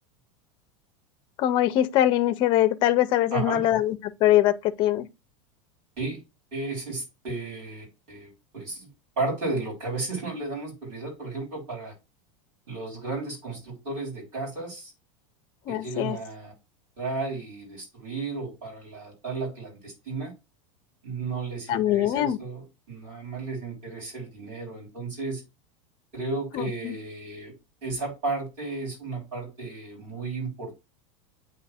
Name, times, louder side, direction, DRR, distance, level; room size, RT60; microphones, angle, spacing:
voice 1, 1.4-5.1 15.7-16.2 21.7-22.4 26.5-26.9, left 13 dB, 30° left, 0.5 m, -23 dB
voice 2, 3.3-3.6 6.0-6.2 6.5-8.9 9.2-11.9 12.7-14.9 15.7-16.5 17.0-20.3 21.0-25.4 26.1-27.5 27.8-30.7, right 3 dB, 35° right, 3.6 m, -33 dB
8.4 x 2.9 x 4.2 m
supercardioid pair, 175°, 16 cm